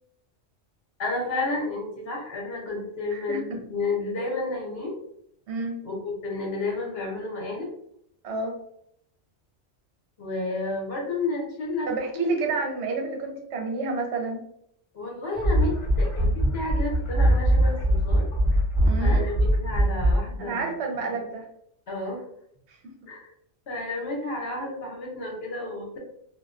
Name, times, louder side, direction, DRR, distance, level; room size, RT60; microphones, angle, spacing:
voice 1, 1.0-4.9 5.8-7.7 10.2-11.9 12.2-12.5 14.9-18.2 18.5-18.6 19.0-20.7 21.2-21.3 21.9-22.2 23.1-23.3 23.7-26.0, left 2 dB, 65° left, -2 dB, 1.0 m, -31 dB
voice 2, 3.1-3.6 5.5-5.8 8.2-8.5 11.9-14.4 18.8-19.2 20.4-21.5 22.7-22.8, right 3 dB, 70° right, 1 dB, 0.9 m, -29 dB
sound 1, 15.3-20.2, right 1 dB, 30° left, 0.8 m, -22 dB
2.4 x 2.2 x 2.4 m, 0.70 s
omnidirectional pair, 1.2 m